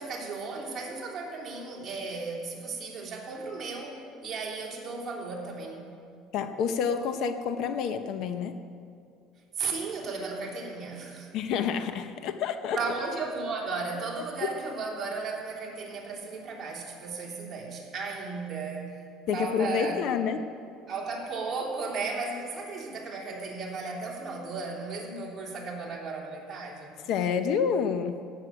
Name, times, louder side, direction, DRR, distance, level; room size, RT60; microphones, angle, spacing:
voice 1, 0.0-5.9 9.6-11.3 12.7-19.0 19.3-20.0 20.9-27.0, right 4 dB, 25° right, -3 dB, 3.2 m, -35 dB
voice 2, 6.3-8.6 11.3-12.8 19.3-20.5 27.1-28.2, left 7 dB, 55° left, 9 dB, 0.7 m, -28 dB
15.5 x 7.4 x 9.1 m, 2.3 s
cardioid pair, 150°, 0 cm